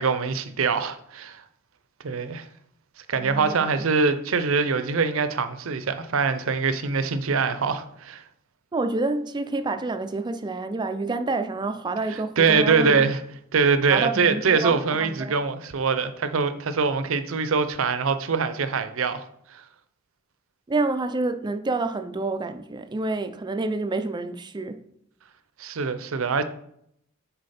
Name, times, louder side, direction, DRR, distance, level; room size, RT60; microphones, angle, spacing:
voice 1, 0.0-1.4 2.0-2.5 3.1-8.2 12.1-13.2 13.5-19.2 19.5-19.6 25.6-26.4, right 5 dB, 70° right, 0.6 m, -23 dB
voice 2, 3.2-3.7 8.7-13.1 13.9-15.3 20.7-24.9, right 3 dB, 20° right, 0.4 m, -28 dB
6.4 x 4.6 x 4.2 m
head